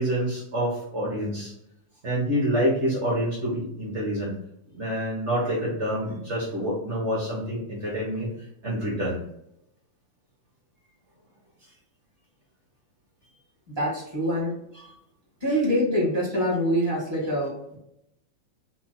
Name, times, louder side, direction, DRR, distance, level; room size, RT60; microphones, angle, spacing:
voice 1, 0.0-1.5 2.0-4.3 4.8-8.3 8.6-9.2 14.8-15.0, equal, 85° right, -5 dB, 0.6 m, -27 dB
voice 2, 13.7-14.6 15.4-17.8, equal, 15° right, -6 dB, 1.1 m, -25 dB
5.0 x 2.4 x 4.3 m, 0.81 s
omnidirectional pair, 3.4 m